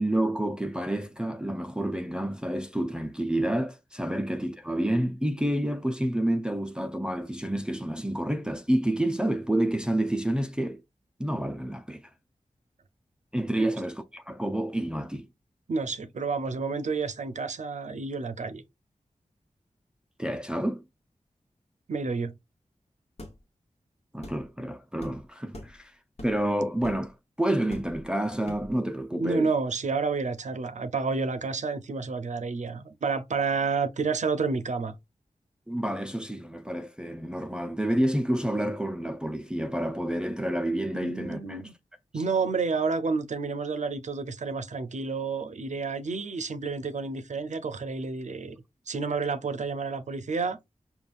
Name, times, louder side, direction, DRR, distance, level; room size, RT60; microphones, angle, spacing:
voice 1, 0.0-10.8 11.2-12.1 13.3-15.3 20.2-20.8 24.1-25.9 26.2-29.5 35.7-41.6 42.1-42.2, right 1 dB, 5° right, 0.5 m, -29 dB
voice 2, 15.7-18.6 21.9-22.3 29.1-34.9 40.9-41.7 42.1-48.6 48.9-50.6, right 4 dB, 70° right, 0.6 m, -30 dB
sound 1, 23.2-23.4 24.2-24.4 25.0-25.2 25.5-25.8 26.2-26.4 26.8-27.1 27.7-28.1 28.5-28.8, left 1 dB, 55° left, 1.2 m, -42 dB
5.2 x 2.3 x 2.4 m
wide cardioid pair, 70°, 13 cm